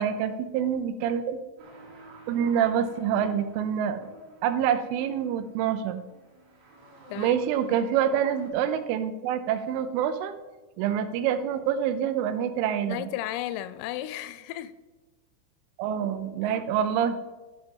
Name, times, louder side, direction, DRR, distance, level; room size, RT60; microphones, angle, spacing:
voice 1, 0.0-1.4 2.3-4.1 4.4-6.0 7.2-10.3 10.8-13.1 15.8-17.2, right 9 dB, 80° right, 3.1 m, -26 dB
sound 1, 1.6-8.5, right 2 dB, 45° right, 3.1 m, -50 dB
voice 2, 12.9-14.7 16.5-16.6, left 13 dB, 85° left, 3.1 m, -34 dB
12.0 x 6.2 x 5.3 m
omnidirectional pair, 5.8 m